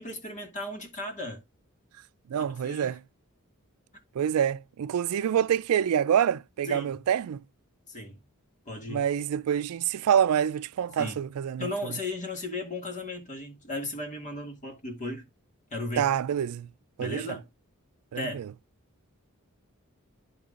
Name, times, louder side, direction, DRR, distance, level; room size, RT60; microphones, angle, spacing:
voice 1, 0.0-1.4 2.4-3.0 6.6-7.0 7.9-8.2 8.7-9.1 11.0-11.2 11.6-15.3 15.7-16.1 17.0-17.5 18.1-18.4, left 1 dB, 35° left, 2.1 m, -36 dB
voice 2, 2.3-3.0 4.1-7.4 8.9-11.7 16.0-16.7 17.0-17.4 18.1-18.5, right 9 dB, 80° right, 0.3 m, -26 dB
10.5 x 5.4 x 2.5 m
head